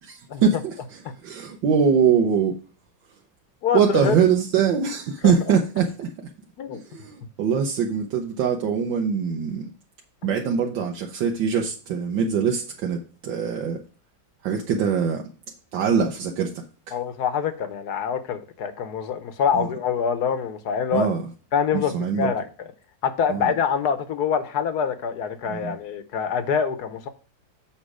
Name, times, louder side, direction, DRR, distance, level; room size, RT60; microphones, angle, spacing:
voice 1, 0.0-2.6 3.7-6.1 6.8-9.7 10.2-13.8 14.4-15.3 15.7-17.0 19.5-19.7 20.9-21.2 21.7-22.3 23.3-23.5 25.4-25.7, right 6 dB, 80° right, 1.6 m, -23 dB
voice 2, 3.6-4.2 5.2-5.3 6.6-6.8 16.9-21.1 21.5-22.7 23.0-27.1, left 7 dB, 65° left, 1.3 m, -25 dB
7.3 x 5.3 x 4.8 m
omnidirectional pair, 2.0 m